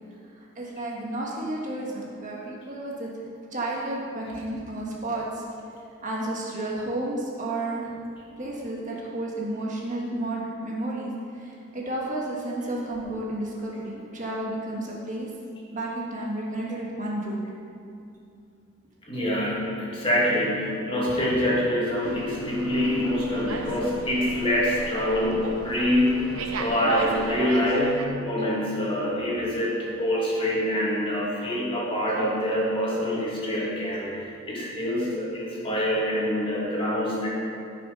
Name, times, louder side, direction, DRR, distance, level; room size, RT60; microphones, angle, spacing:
voice 1, 0.4-5.4 6.0-8.0 8.4-15.3 15.7-17.4, right 1 dB, 35° right, -3 dB, 1.5 m, -32 dB
voice 2, 19.1-37.3, equal, 25° left, -6 dB, 2.4 m, -25 dB
Slam, 22.0-28.1, right 2 dB, 85° right, 1.0 m, -36 dB
13.5 x 6.2 x 5.4 m, 2.5 s
head